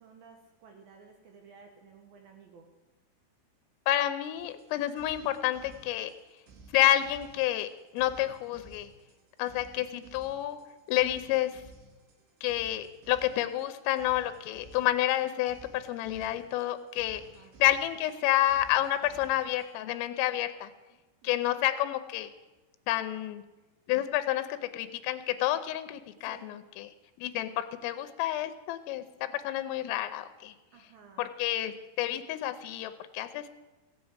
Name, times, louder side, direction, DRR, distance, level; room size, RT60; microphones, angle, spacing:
voice 1, 0.0-2.7 8.2-8.3 13.6-13.7 17.1-17.5 20.9-21.6 26.2-26.5 30.7-31.3, right 5 dB, 75° right, 3 dB, 2.1 m, -55 dB
voice 2, 3.9-6.1 6.7-8.9 9.4-10.6 10.9-11.6 12.4-17.2 17.6-20.7 21.2-22.3 22.9-23.4 23.9-26.9 27.2-30.5 31.2-33.5, left 13 dB, 90° left, 10 dB, 3.3 m, -29 dB
sound 1, 4.4-19.7, right 3 dB, 60° right, 3.9 m, -55 dB
16.0 x 8.1 x 8.0 m, 1.1 s
omnidirectional pair, 5.7 m